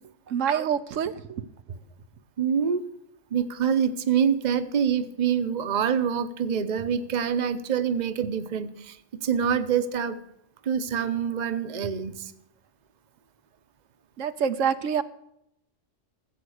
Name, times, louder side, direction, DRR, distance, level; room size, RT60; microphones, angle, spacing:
voice 1, 0.3-1.5 14.2-15.0, right 7 dB, 80° right, 11 dB, 1.1 m, -26 dB
voice 2, 2.4-2.9 3.3-10.2 10.6-12.3, right 7 dB, 40° right, 10 dB, 0.9 m, -26 dB
14.5 x 8.1 x 6.4 m, 0.79 s
omnidirectional pair, 1.3 m